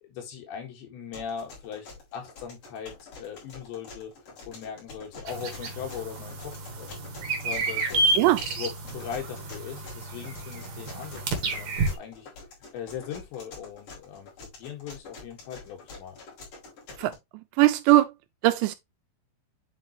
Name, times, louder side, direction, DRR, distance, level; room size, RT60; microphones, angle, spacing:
voice 1, 0.0-4.1 4.5-6.9 7.4-8.0 8.4-12.3 12.7-16.2, left 8 dB, 75° left, 3.9 m, -39 dB
sound 1, 1.1-17.1, left 4 dB, 45° left, 4.4 m, -47 dB
sound 2, 5.3-12.0, right 2 dB, 70° right, 1.7 m, -30 dB
voice 2, 17.6-18.1 18.4-18.8, right 16 dB, 85° right, 2.7 m, -20 dB
9.1 x 3.9 x 3.0 m
omnidirectional pair, 5.3 m